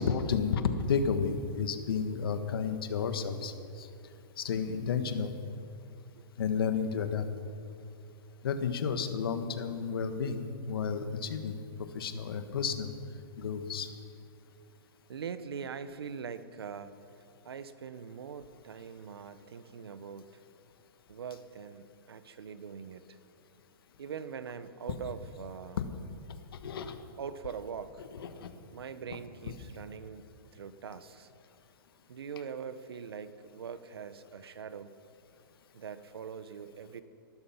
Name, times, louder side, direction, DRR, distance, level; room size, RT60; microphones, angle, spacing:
voice 1, 0.0-3.9 4.4-5.3 6.4-7.2 8.4-12.9 13.4-13.9 26.5-27.0 28.1-28.5 29.4-29.5, left 6 dB, 70° left, 8 dB, 1.6 m, -32 dB
voice 2, 15.1-16.9 17.4-20.3 21.1-23.2 24.0-25.8 27.2-28.0 28.7-31.3 32.1-34.9 35.7-37.0, right 6 dB, 85° right, 13 dB, 1.1 m, -42 dB
19.5 x 12.0 x 5.9 m, 2.5 s
hypercardioid pair, 145°, 12 cm